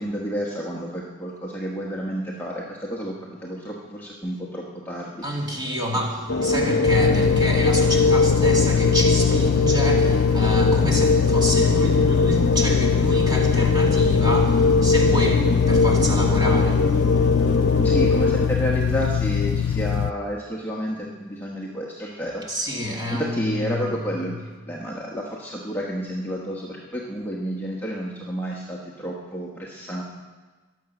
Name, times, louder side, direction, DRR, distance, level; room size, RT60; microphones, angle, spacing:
voice 1, 0.0-5.2 17.8-22.4 23.1-24.3 24.7-30.0, equal, 10° left, -4 dB, 1.2 m, -30 dB
voice 2, 5.2-17.9 22.5-23.9 24.3-24.4, equal, 20° right, -2 dB, 2.5 m, -28 dB
sound 1, 6.3-18.5, left 2 dB, 65° left, 0.8 m, -21 dB
sound 2, 6.9-20.1, left 8 dB, 90° left, 0.4 m, -22 dB
22.5 x 7.7 x 6.1 m, 1.3 s
head